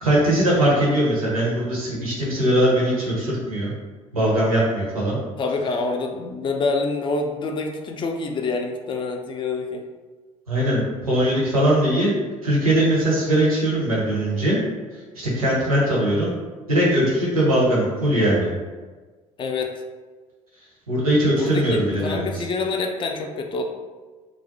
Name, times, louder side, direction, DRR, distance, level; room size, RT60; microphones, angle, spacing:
voice 1, 0.0-3.7 4.1-5.2 10.5-12.1 12.4-14.6 15.2-16.3 16.7-18.5 20.9-22.4, right 1 dB, 90° right, -6 dB, 0.7 m, -20 dB
voice 2, 5.4-9.8 19.4-19.7 21.4-23.6, left 3 dB, 30° left, 3 dB, 0.4 m, -26 dB
2.4 x 2.0 x 2.6 m, 1.4 s
hypercardioid pair, 60°, 18 cm